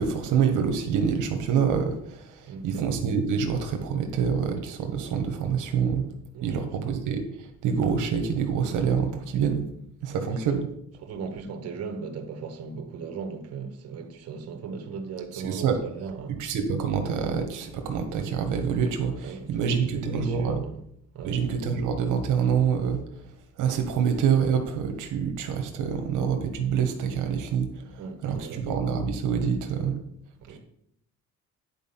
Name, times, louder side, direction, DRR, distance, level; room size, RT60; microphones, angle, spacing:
voice 1, 0.0-6.0 6.4-7.2 7.6-9.6 10.0-10.6 15.3-15.8 16.4-20.6 21.2-23.0 23.6-27.7 28.2-29.9 30.5-30.6, right 7 dB, 70° right, 1.1 m, -26 dB
voice 2, 2.5-2.9 6.3-6.6 10.1-10.3 11.0-16.4 19.2-20.8 21.1-21.4 28.0-28.7 30.4-30.6, right 5 dB, 50° right, 1.1 m, -38 dB
9.6 x 4.4 x 5.5 m
cardioid pair, 155°, 32 cm